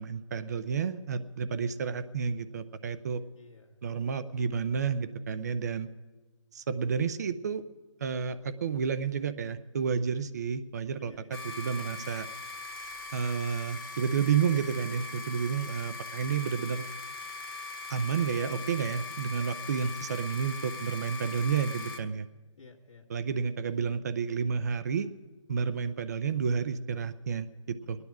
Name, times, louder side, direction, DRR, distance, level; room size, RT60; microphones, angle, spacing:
voice 1, 0.0-3.2 3.8-5.9 6.5-7.6 8.0-11.1 11.6-12.3 13.1-16.8 17.9-22.3 23.1-25.1 25.5-28.0, right 6 dB, 35° right, 13 dB, 0.5 m, -30 dB
voice 2, 3.3-3.8 11.0-11.4 19.6-20.1 22.6-23.1 27.9-28.0, left 4 dB, 80° left, -4 dB, 1.7 m, -53 dB
sound 1, 11.3-22.0, left 3 dB, 45° left, 1.3 m, -41 dB
21.5 x 9.6 x 6.0 m, 1.2 s
figure-of-eight pair, 155°, 16 cm